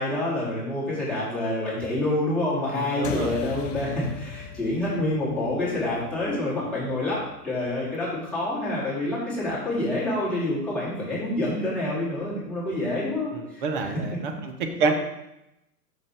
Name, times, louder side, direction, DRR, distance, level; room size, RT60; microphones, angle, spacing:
voice 1, 0.0-14.0, left 1 dB, ahead, -10 dB, 2.3 m, -27 dB
voice 2, 2.7-3.4 13.3-14.5 14.8-14.9, right 4 dB, 35° right, 5 dB, 0.9 m, -27 dB
sound 1, 3.0-7.9, left 7 dB, 50° left, 0.6 m, -38 dB
6.1 x 5.2 x 3.4 m, 0.89 s
figure-of-eight pair, 115°, 48 cm